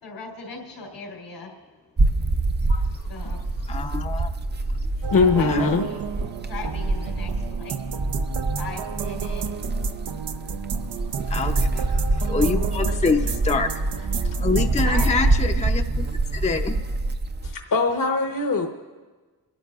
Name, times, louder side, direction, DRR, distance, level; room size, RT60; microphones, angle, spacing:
voice 1, 0.0-1.5 3.1-3.4 5.1-6.0 6.5-7.8 8.6-9.5 11.7-11.9 14.8-15.4, left 3 dB, 90° left, -1 dB, 3.5 m, -38 dB
sound 1, 2.0-17.5, right 2 dB, 25° right, 0.5 m, -25 dB
voice 2, 3.7-4.3 5.4-5.7 11.3-13.7 14.2-16.1 16.3-16.8, left 4 dB, 15° left, 4 dB, 0.6 m, -26 dB
sound 2, 5.0-15.2, right 7 dB, 75° right, 0.7 m, -32 dB
voice 3, 5.1-5.9 12.2-12.3 14.3-14.4 17.4-18.7, left 4 dB, 50° left, 3 dB, 1.0 m, -22 dB
29.5 x 12.5 x 2.4 m, 1.3 s
cardioid pair, 85°, 41 cm